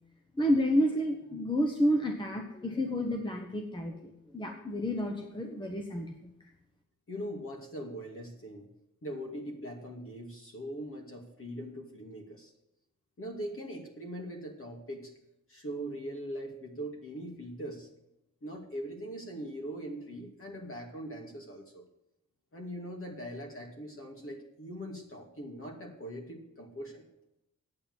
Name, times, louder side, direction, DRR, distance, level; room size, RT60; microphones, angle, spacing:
voice 1, 0.4-6.1, equal, 15° left, 2 dB, 1.1 m, -30 dB
voice 2, 7.1-8.6 9.0-12.5 13.2-15.1 15.5-17.9 18.4-21.8 22.5-27.0, equal, 45° left, 1 dB, 2.4 m, -41 dB
8.8 x 8.7 x 7.2 m, 0.85 s
wide cardioid pair, 125°, 31 cm